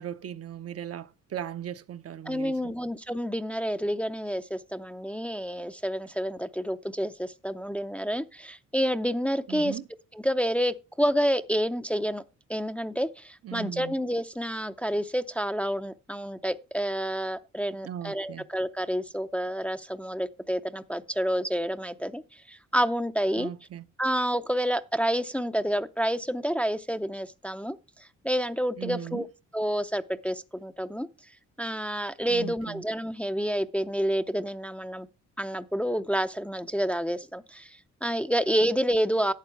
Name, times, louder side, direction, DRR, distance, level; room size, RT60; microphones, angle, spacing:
voice 1, 0.0-2.8 9.5-9.9 13.4-13.9 17.8-18.5 23.4-23.8 28.8-29.2 32.3-32.8, right 10 dB, 50° right, 0.7 m, -38 dB
voice 2, 2.3-9.8 10.1-12.2 12.5-23.5 24.0-29.2 29.5-31.1 31.6-35.1 35.4-39.3, equal, 5° left, 0.5 m, -29 dB
11.5 x 8.0 x 4.6 m
cardioid pair, 90°, 30 cm